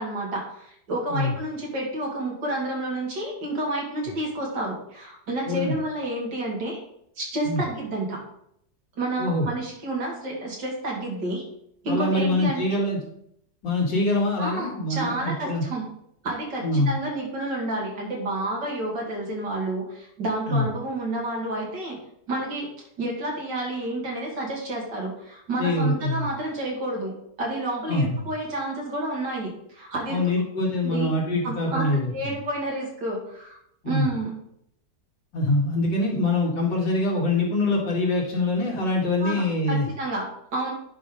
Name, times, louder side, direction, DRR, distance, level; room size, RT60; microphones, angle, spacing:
voice 1, 0.0-6.8 7.2-8.2 9.0-11.4 11.8-12.8 14.4-15.9 16.2-22.0 22.3-22.7 23.0-30.3 30.8-31.1 31.4-31.9 32.1-33.6 33.8-34.4 39.2-39.4 39.7-40.7, right 1 dB, 75° right, -2 dB, 3.0 m, -30 dB
voice 2, 11.9-13.0 13.6-15.6 16.6-16.9 20.5-20.7 25.6-26.3 27.9-28.3 30.1-32.3 33.8-34.1 35.3-39.9, left 2 dB, 85° left, -3 dB, 2.9 m, -24 dB
10.0 x 5.5 x 3.8 m, 0.72 s
omnidirectional pair, 1.9 m